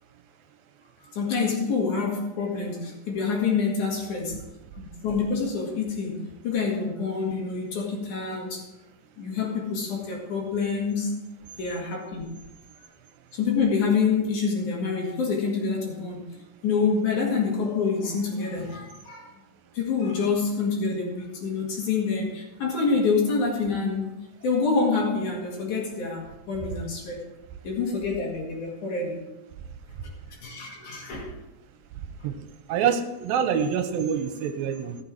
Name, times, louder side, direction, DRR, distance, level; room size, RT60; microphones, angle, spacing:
voice 1, 1.1-4.4 4.8-8.6 9.2-11.1 11.6-12.3 13.3-16.2 16.6-19.3 19.7-24.1 24.4-27.2 27.6-29.2 30.4-31.3, left 5 dB, 60° left, -1 dB, 3.3 m, -27 dB
voice 2, 32.7-35.0, right 7 dB, 85° right, 8 dB, 2.6 m, -26 dB
14.5 x 6.8 x 4.7 m, 0.96 s
omnidirectional pair, 4.1 m